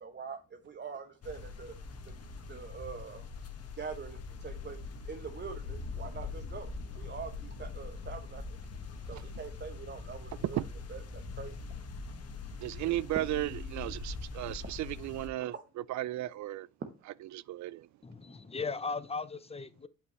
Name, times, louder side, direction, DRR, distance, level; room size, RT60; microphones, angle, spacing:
voice 1, 0.0-1.8 2.0-2.1 2.5-3.3 3.7-4.8 5.1-7.3 7.6-8.6 9.1-10.6 10.9-11.7 12.5-12.6 13.3-14.0 15.5-15.6 16.8-16.9, right 5 dB, 35° right, 1.0 m, -44 dB
sound 1, 1.2-15.3, left 4 dB, 55° left, 1.5 m, -43 dB
voice 2, 12.6-15.5 15.9-16.7 17.2-17.9, right 15 dB, 70° right, 0.4 m, -35 dB
voice 3, 18.0-19.9, left 4 dB, 20° left, 0.7 m, -37 dB
8.4 x 5.3 x 3.1 m
cardioid pair, 90°, 30 cm